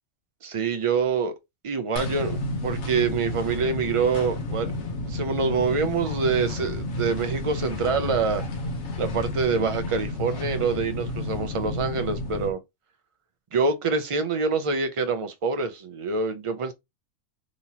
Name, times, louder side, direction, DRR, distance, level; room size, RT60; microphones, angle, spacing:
voice 1, 0.4-1.3 1.6-4.7 5.1-8.4 9.0-12.6 13.5-16.7, right 5 dB, 55° right, 0.3 m, -26 dB
sound 1, 2.0-12.5, left 2 dB, 65° left, 1.1 m, -31 dB
3.7 x 3.0 x 2.7 m
omnidirectional pair, 1.3 m